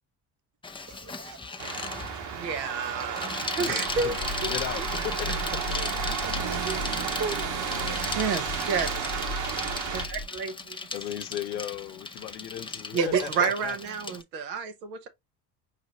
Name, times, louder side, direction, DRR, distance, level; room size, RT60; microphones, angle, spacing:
Bicycle, 0.6-14.2, left 4 dB, 10° left, 0.5 m, -37 dB
voice 1, 0.9-1.4 3.1-3.4 5.8-5.9 6.2-6.9 7.2-7.7 12.9-13.5, right 6 dB, 40° right, 0.7 m, -34 dB
sound 1, 1.6-10.1, right 7 dB, 60° right, 1.3 m, -33 dB
voice 2, 2.3-4.2 4.4-4.5 8.1-8.9 9.9-10.8 12.9-15.1, right 5 dB, 85° right, 1.0 m, -30 dB
voice 3, 3.6-5.6 6.1-6.2 10.9-13.8, left 12 dB, 85° left, 0.6 m, -37 dB
sound 2, 3.9-10.3, left 2 dB, 25° left, 1.1 m, -37 dB
4.9 x 3.1 x 2.9 m
hypercardioid pair, 60°, 49 cm